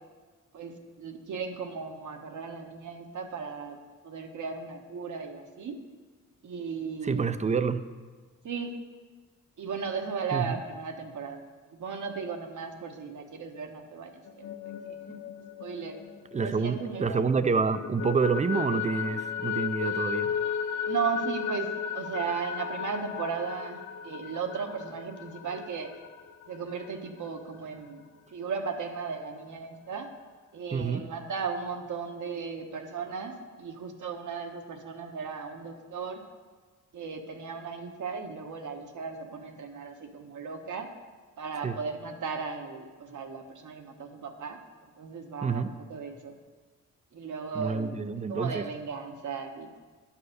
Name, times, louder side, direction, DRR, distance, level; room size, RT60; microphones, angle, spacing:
voice 1, 0.5-3.8 4.0-5.8 6.4-7.3 8.4-8.7 9.6-11.4 11.7-14.5 14.8-15.2 15.6-16.0 16.4-17.3 20.9-25.9 26.5-28.0 28.3-30.1 30.5-36.2 36.9-40.9 41.4-44.6 45.0-46.4 47.1-47.9 48.3-49.8, right 5 dB, 65° right, 4 dB, 1.1 m, -36 dB
voice 2, 7.0-7.9 10.3-10.6 16.3-20.3 30.7-31.1 41.6-41.8 45.4-45.8 47.5-48.7, right 5 dB, 20° right, 12 dB, 0.4 m, -28 dB
sound 1, 14.3-17.1 17.4-26.9, left 7 dB, 60° left, 0.5 m, -35 dB
9.8 x 4.8 x 6.5 m, 1.4 s
cardioid pair, 90°, 32 cm